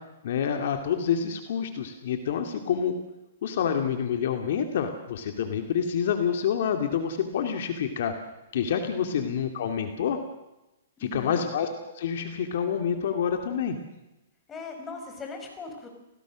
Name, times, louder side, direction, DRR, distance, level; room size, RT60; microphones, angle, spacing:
voice 1, 0.2-2.9 3.4-8.1 8.5-10.2 11.0-11.7 11.9-13.8, left 8 dB, 60° left, 6 dB, 2.7 m, -27 dB
voice 2, 11.0-11.5 14.5-15.9, left 3 dB, 15° left, 3 dB, 5.6 m, -39 dB
30.0 x 18.5 x 6.5 m, 0.97 s
hypercardioid pair, 145°, 0 cm